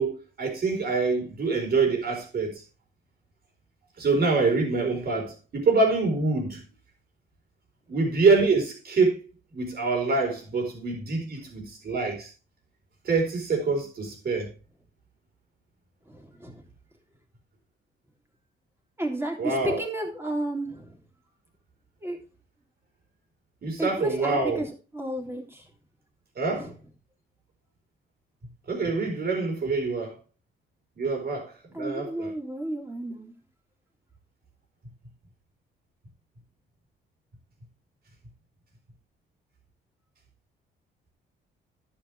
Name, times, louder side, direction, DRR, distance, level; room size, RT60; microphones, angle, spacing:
voice 1, 0.0-2.6 4.0-6.6 7.9-9.2 9.5-12.3 13.0-14.5 19.4-19.8 23.6-24.6 26.4-26.7 28.7-30.2 31.0-32.3, right 4 dB, 50° right, 4.3 m, -25 dB
voice 2, 16.1-16.6 19.0-20.9 22.0-22.2 23.8-24.7 24.9-25.6 26.5-26.7 31.7-33.3, right 1 dB, 10° right, 3.2 m, -32 dB
11.0 x 8.1 x 3.4 m
cardioid pair, 90°, 20 cm